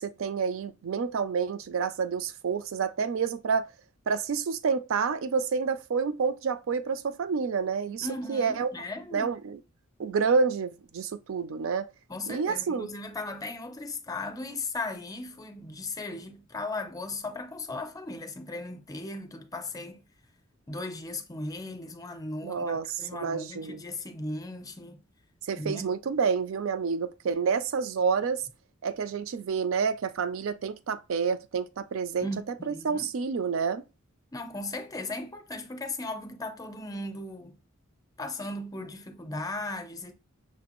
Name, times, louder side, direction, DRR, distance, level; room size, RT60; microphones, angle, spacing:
voice 1, 0.0-3.7 4.1-8.7 9.1-9.6 10.0-11.9 12.3-12.9 22.4-23.8 25.5-28.4 28.8-32.3 32.7-33.8, right 5 dB, 70° right, 0.4 m, -29 dB
voice 2, 8.0-9.3 12.1-20.0 20.7-25.0 25.6-25.9 32.2-33.1 34.3-37.6 38.2-40.1, left 2 dB, 15° left, 0.5 m, -37 dB
6.0 x 2.4 x 2.9 m
head